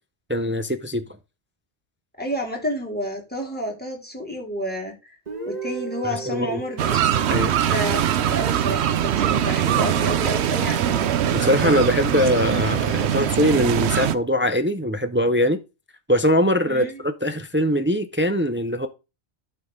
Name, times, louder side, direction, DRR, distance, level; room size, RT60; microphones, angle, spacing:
voice 1, 0.3-1.0 6.0-6.6 7.3-7.5 11.3-15.6 16.1-18.9, equal, 15° right, 0.4 m, -22 dB
voice 2, 2.2-5.2 5.5-7.0 7.6-11.2 16.7-17.0, equal, 10° left, 2.6 m, -30 dB
Guitar, 5.3-9.1, right 5 dB, 40° right, 1.5 m, -37 dB
sound 1, 6.8-14.1, right 10 dB, 85° right, 0.9 m, -22 dB
11.5 x 4.6 x 3.6 m
omnidirectional pair, 1.1 m